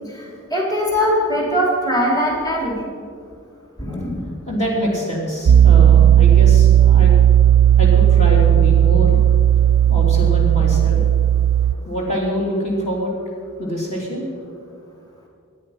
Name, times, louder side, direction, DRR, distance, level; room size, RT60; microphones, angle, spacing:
voice 1, 0.2-2.8 3.8-4.2, equal, 20° left, -2 dB, 3.2 m, -21 dB
voice 2, 4.5-7.1 7.8-9.2 9.9-11.0 11.8-13.1 13.6-14.3, equal, 35° left, -4 dB, 3.1 m, -24 dB
Piano, 5.5-11.7, right 10 dB, 70° right, 0.4 m, -13 dB
24.0 x 9.4 x 5.7 m, 2.3 s
head